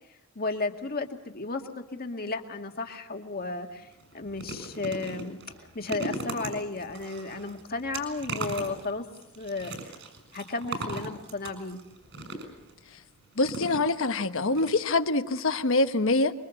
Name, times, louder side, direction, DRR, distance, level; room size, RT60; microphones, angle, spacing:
voice 1, 0.4-3.9 4.1-5.4 5.7-9.1 9.4-9.7 10.3-11.8, left 3 dB, 45° left, 2.0 m, -33 dB
sound 1, 3.4-3.5 3.9-12.7 13.4-14.2 14.6-14.7 15.0-15.1, right 2 dB, 60° right, 6.7 m, -38 dB
voice 2, 13.4-16.3, left 2 dB, 65° left, 1.3 m, -25 dB
25.0 x 23.0 x 7.1 m
head